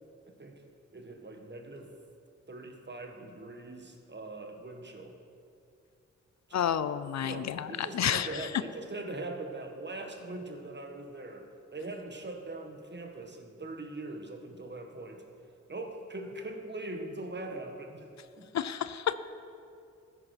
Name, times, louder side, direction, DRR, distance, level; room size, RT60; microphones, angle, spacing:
voice 1, 0.3-0.6 0.9-1.9 2.5-5.2 6.5-6.6 7.2-15.2 15.7-18.1 18.4-18.5, right 2 dB, 35° right, 4 dB, 1.7 m, -41 dB
voice 2, 6.5-8.5 18.5-19.1, left 9 dB, 60° left, 14 dB, 0.5 m, -30 dB
14.0 x 10.0 x 4.5 m, 2.5 s
supercardioid pair, 45°, 30 cm